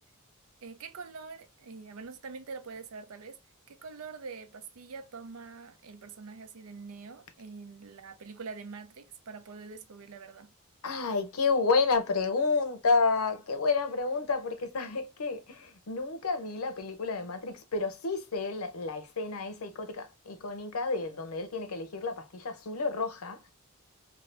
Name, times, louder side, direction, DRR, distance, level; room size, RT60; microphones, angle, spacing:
voice 1, 0.6-3.4 3.7-10.5, right 4 dB, 70° right, 0.5 m, -44 dB
voice 2, 10.8-23.5, left 4 dB, 80° left, 0.7 m, -30 dB
2.6 x 2.4 x 3.2 m
head